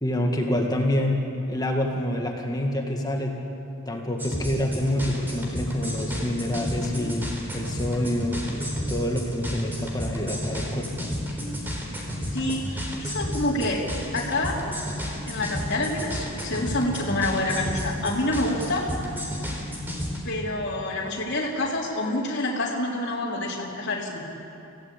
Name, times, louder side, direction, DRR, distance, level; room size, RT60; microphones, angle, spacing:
voice 1, 0.0-1.2 1.5-3.3 3.9-8.6 8.9-11.1, left 1 dB, 20° left, 1 dB, 2.1 m, -27 dB
sound 1, 4.2-20.2, equal, 10° right, 4.0 m, -32 dB
voice 2, 12.3-13.8 14.1-14.6 15.3-18.9 20.2-24.3, left 2 dB, 55° left, -6 dB, 3.4 m, -27 dB
27.5 x 17.0 x 8.5 m, 2.7 s
head